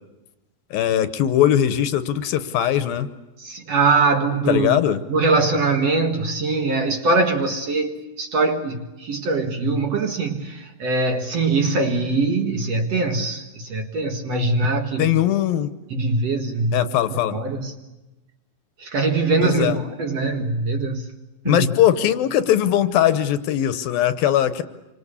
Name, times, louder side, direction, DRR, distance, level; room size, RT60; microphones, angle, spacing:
voice 1, 0.7-3.1 4.5-5.0 15.0-15.7 16.7-17.4 19.4-19.8 21.5-24.6, left 11 dB, 75° left, 2.7 m, -20 dB
voice 2, 3.4-4.8 5.1-15.1 15.9-16.8 17.3-17.7 18.8-21.0 21.5-21.7, right 3 dB, 50° right, 2.3 m, -22 dB
27.0 x 25.5 x 8.4 m
omnidirectional pair, 4.4 m